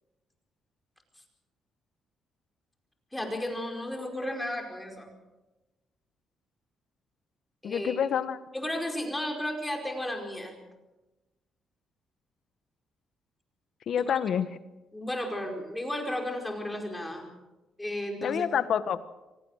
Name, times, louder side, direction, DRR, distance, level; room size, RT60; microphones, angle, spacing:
voice 1, 3.1-5.1 7.6-8.0 8.5-10.6 14.1-14.2 14.9-17.3 17.8-18.4, left 1 dB, 10° left, 3 dB, 4.9 m, -33 dB
voice 2, 7.6-8.4 13.9-14.5 18.2-19.0, left 8 dB, 65° left, 13 dB, 1.3 m, -27 dB
25.0 x 17.5 x 6.5 m, 1.1 s
cardioid pair, 90°, 0 cm